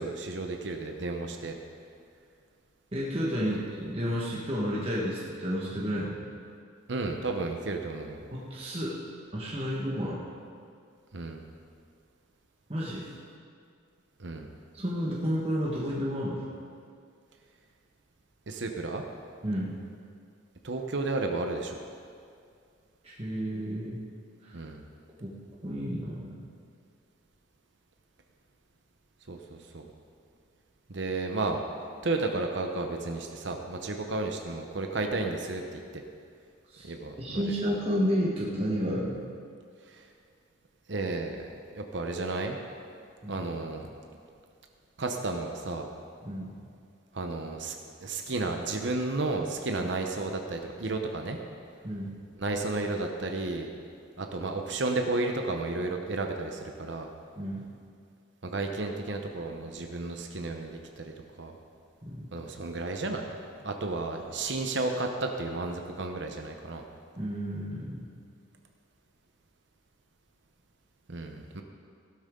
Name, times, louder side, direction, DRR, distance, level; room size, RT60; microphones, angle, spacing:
voice 1, 0.0-1.6 3.5-3.6 6.9-8.2 11.1-11.4 14.2-14.5 18.5-19.0 20.6-21.7 24.5-24.8 29.3-29.8 30.9-31.6 32.0-36.0 36.8-37.5 39.9-40.0 40.9-42.6 43.3-43.9 45.0-45.9 47.1-47.8 48.0-51.4 52.4-53.7 54.2-57.1 58.4-61.1 61.4-61.5 62.3-66.8 71.1-71.6, right 2 dB, 65° right, 3 dB, 0.9 m, -32 dB
voice 2, 2.9-6.2 8.3-8.9 9.3-10.2 12.7-13.1 14.7-16.4 19.4-19.7 23.0-24.0 24.4-24.6 25.2-25.3 25.6-26.3 36.7-36.9 37.2-39.2 43.2-43.4 46.2-46.5 49.8-49.9 51.8-52.1 57.3-57.6 62.0-62.3 67.2-68.1, equal, 30° right, -6 dB, 1.5 m, -31 dB
16.5 x 12.0 x 3.8 m, 2.3 s
head